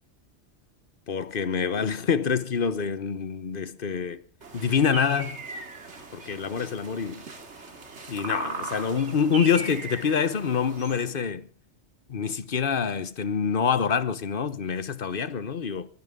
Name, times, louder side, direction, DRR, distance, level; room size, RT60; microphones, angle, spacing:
voice 1, 1.1-4.2 4.5-5.4 6.1-7.3 8.1-11.5 12.1-15.9, left 6 dB, 50° left, 1.2 m, -26 dB
sound 1, 4.4-11.0, right 3 dB, 65° right, 2.5 m, -39 dB
22.0 x 16.5 x 3.7 m
omnidirectional pair, 1.2 m